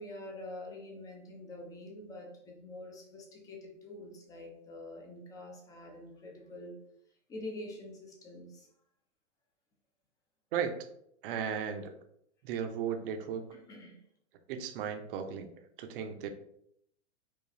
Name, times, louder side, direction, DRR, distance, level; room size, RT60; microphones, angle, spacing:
voice 1, 0.0-6.8 7.3-8.7 13.5-14.0, left 1 dB, 10° left, 1 dB, 0.4 m, -46 dB
voice 2, 11.2-11.9 12.4-13.5 14.5-16.3, right 7 dB, 50° right, 6 dB, 0.6 m, -35 dB
4.8 x 2.4 x 2.6 m, 0.72 s
hypercardioid pair, 135°, 36 cm